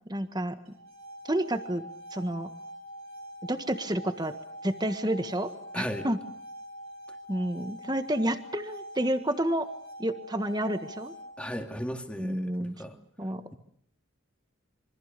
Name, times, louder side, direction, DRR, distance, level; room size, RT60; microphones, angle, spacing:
voice 1, 0.1-0.6 1.3-1.8 2.1-2.5 3.5-4.3 4.6-5.5 5.7-6.2 7.3-9.7 10.0-11.1 12.2-12.7 13.2-13.4, right 1 dB, 20° right, 9 dB, 1.6 m, -29 dB
sound 1, 0.7-11.6, equal, 80° right, 5.6 m, -44 dB
voice 2, 5.7-6.1 11.4-13.0, equal, 5° left, 4 dB, 2.1 m, -36 dB
27.0 x 25.0 x 6.8 m, 0.63 s
head